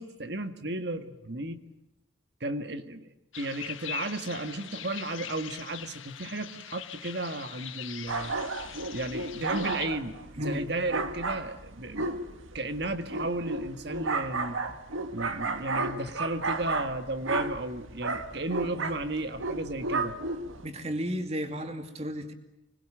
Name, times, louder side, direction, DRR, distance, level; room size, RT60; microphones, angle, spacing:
voice 1, 0.0-1.6 2.4-8.4 8.9-14.6 15.1-20.2, right 2 dB, 55° right, 9 dB, 1.7 m, -34 dB
sound 1, 3.3-9.9, left 10 dB, 80° left, 1.6 m, -42 dB
sound 2, 8.1-20.7, right 3 dB, 85° right, 2.0 m, -33 dB
voice 2, 20.6-22.3, equal, 30° right, 6 dB, 2.5 m, -33 dB
26.0 x 20.5 x 9.0 m, 0.92 s
head